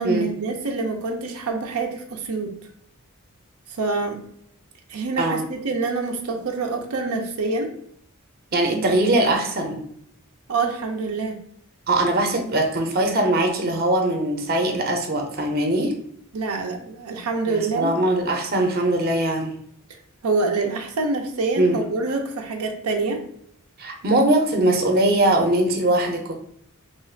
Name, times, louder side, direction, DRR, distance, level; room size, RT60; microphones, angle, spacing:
voice 1, 0.0-2.6 3.7-4.2 4.9-7.7 8.7-9.0 10.5-11.4 16.3-17.9 20.2-23.2, right 3 dB, 90° right, 3 dB, 0.6 m, -26 dB
voice 2, 8.5-9.8 11.9-15.9 17.5-19.5 21.6-21.8 23.8-26.3, right 1 dB, 45° right, 3 dB, 0.7 m, -21 dB
3.0 x 2.4 x 4.3 m, 0.69 s
head